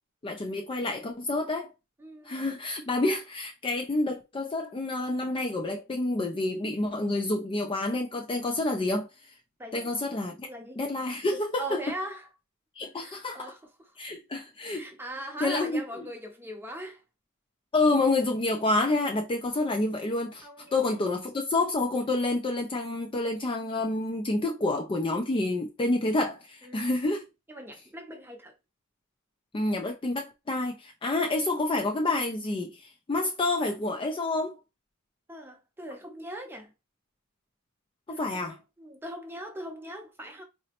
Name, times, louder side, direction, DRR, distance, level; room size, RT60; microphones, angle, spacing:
voice 1, 0.2-1.7 2.3-9.1 9.7-10.5 10.8-11.8 12.8-13.5 14.0-14.8 15.4-16.1 17.7-27.3 29.5-34.6 38.1-38.6, left 2 dB, 20° left, 0.3 m, -28 dB
voice 2, 2.0-2.4 9.6-9.9 10.5-10.8 11.6-12.2 12.9-13.6 14.7-17.0 20.4-20.8 26.6-26.9 27.5-28.5 35.3-36.7 38.1-40.4, right 1 dB, 10° right, 0.7 m, -40 dB
3.9 x 2.1 x 2.8 m
head